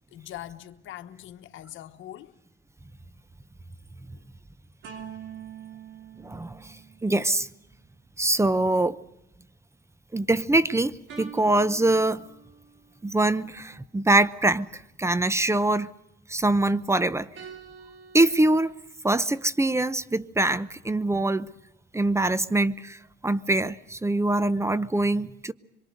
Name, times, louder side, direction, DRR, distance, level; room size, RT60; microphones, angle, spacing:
voice 1, 0.1-2.3, left 12 dB, 80° left, 1.2 m, -42 dB
sound 1, 4.8-7.4 11.1-12.9 17.3-18.7, right 7 dB, 75° right, 3.0 m, -45 dB
voice 2, 6.2-6.7 7.0-7.5 8.2-9.0 10.1-12.3 13.0-15.9 16.3-17.3 18.1-18.7 19.0-21.5 21.9-25.5, right 2 dB, 15° right, 0.8 m, -24 dB
25.0 x 23.0 x 6.5 m
cardioid pair, 90°, 20 cm